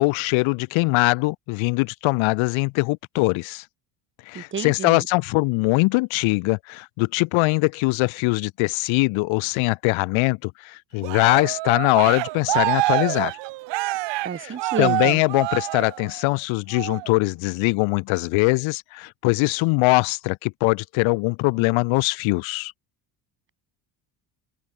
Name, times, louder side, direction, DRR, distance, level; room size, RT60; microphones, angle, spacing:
voice 1, 0.0-3.6 4.3-13.3 14.4-22.7, left 25 dB, 85° left, 2.8 m, -22 dB
voice 2, 4.3-5.0 14.2-15.2, right 7 dB, 25° right, 5.8 m, -30 dB
Cheering, 11.0-16.3 16.7-17.1, right 20 dB, 65° right, 1.7 m, -26 dB
open air
cardioid pair, 165°, 47 cm